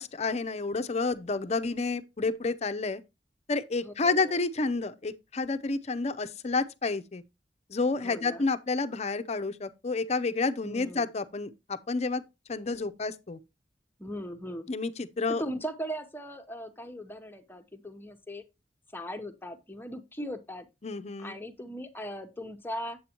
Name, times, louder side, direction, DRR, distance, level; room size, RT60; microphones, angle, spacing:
voice 1, 0.0-3.0 3.5-7.2 7.7-12.2 12.5-13.4 14.7-14.9 15.2-15.4 20.8-21.4, left 3 dB, 40° left, 0.6 m, -30 dB
voice 2, 3.8-4.4 8.0-8.4 10.6-11.1 14.0-14.7 15.4-18.4 18.9-20.7 21.2-23.0, equal, 10° left, 0.8 m, -39 dB
8.4 x 7.7 x 2.9 m
head